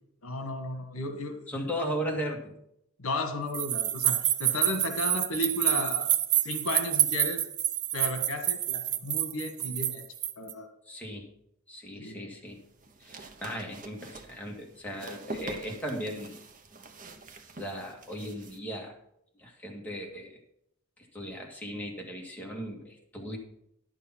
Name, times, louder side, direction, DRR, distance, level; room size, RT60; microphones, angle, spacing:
voice 1, 0.2-1.5 3.0-6.1 6.4-7.4 7.9-10.0 10.4-10.7 12.0-12.2, left 2 dB, 75° left, 7 dB, 1.4 m, -34 dB
voice 2, 1.5-2.5 10.9-11.3 11.7-12.6 13.0-16.4 17.6-18.9 19.4-20.4 21.1-23.4, equal, 10° left, -2 dB, 2.0 m, -37 dB
sound 1, 3.5-10.5, right 12 dB, 85° right, 0.6 m, -28 dB
sound 2, 12.5-18.6, right 3 dB, 40° right, 1.0 m, -45 dB
10.5 x 6.8 x 5.9 m, 0.76 s
head